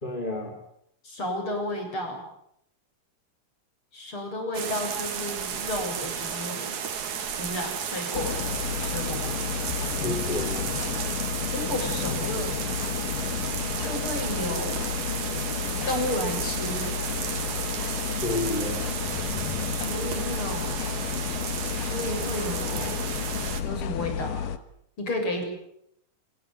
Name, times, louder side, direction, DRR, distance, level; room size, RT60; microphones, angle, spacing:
voice 1, 0.0-0.5 9.9-10.7 18.1-18.9, left 2 dB, 15° left, 2 dB, 3.0 m, -31 dB
voice 2, 1.0-2.2 3.9-6.8 7.4-8.5 8.8-9.3 11.4-12.5 13.8-14.8 15.9-16.9 19.7-20.8 21.8-23.0 23.6-24.5 25.0-25.4, left 1 dB, 40° left, 3 dB, 8.1 m, -32 dB
sound 1, 4.5-23.6, right 7 dB, 65° right, 3.6 m, -33 dB
sound 2, 8.1-24.6, left 8 dB, 85° left, 3.0 m, -32 dB
26.5 x 20.0 x 9.8 m, 0.75 s
omnidirectional pair, 3.7 m